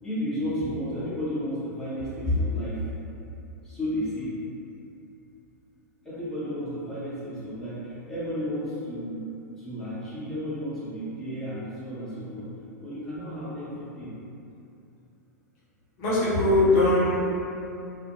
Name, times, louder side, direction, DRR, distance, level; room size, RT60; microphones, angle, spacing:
voice 1, 0.0-2.8 3.6-4.3 6.0-9.2 9.6-12.5 12.8-14.1 16.6-16.9, left 1 dB, 5° left, -13 dB, 0.8 m, -32 dB
voice 2, 16.0-17.2, left 2 dB, 45° left, -9 dB, 0.8 m, -21 dB
2.4 x 2.1 x 2.9 m, 2.7 s
figure-of-eight pair, 95°, 10 cm